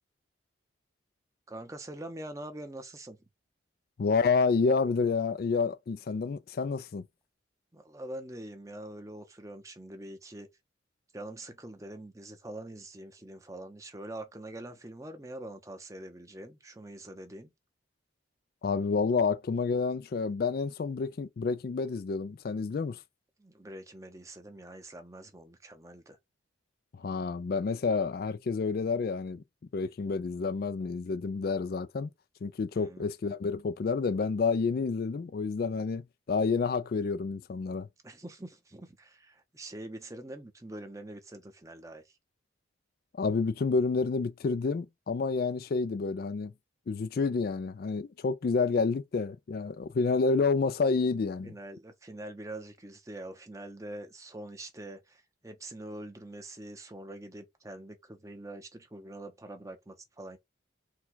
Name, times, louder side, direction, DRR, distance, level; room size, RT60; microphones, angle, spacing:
voice 1, 1.5-3.2 7.7-10.5 11.1-17.5 23.4-26.2 32.7-33.1 38.0-42.1 51.4-60.4, right 1 dB, 15° right, 0.7 m, -44 dB
voice 2, 4.0-7.1 18.6-23.0 26.9-29.4 29.7-32.1 32.4-37.9 43.1-46.5 46.9-51.5, left 4 dB, 50° left, 0.3 m, -29 dB
4.6 x 2.3 x 3.9 m
head